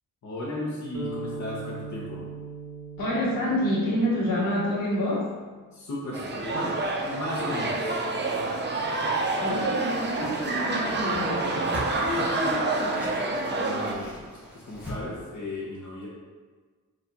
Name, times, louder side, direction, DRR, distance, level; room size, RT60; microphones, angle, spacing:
voice 1, 0.2-2.2 5.7-8.0 11.9-13.1 13.5-14.2 14.5-16.1, left 2 dB, 55° left, -5 dB, 0.8 m, -35 dB
sound 1, 0.9-5.2, right 4 dB, 60° right, 0.8 m, -39 dB
voice 2, 3.0-5.3 9.4-11.6, equal, 90° left, -6 dB, 1.4 m, -27 dB
sound 2, 6.1-13.9, right 2 dB, 35° right, 0.4 m, -28 dB
Whoosh swoosh swish, 9.9-15.0, equal, 5° right, 0.9 m, -41 dB
4.5 x 2.5 x 3.9 m, 1.4 s
wide cardioid pair, 165°, 34 cm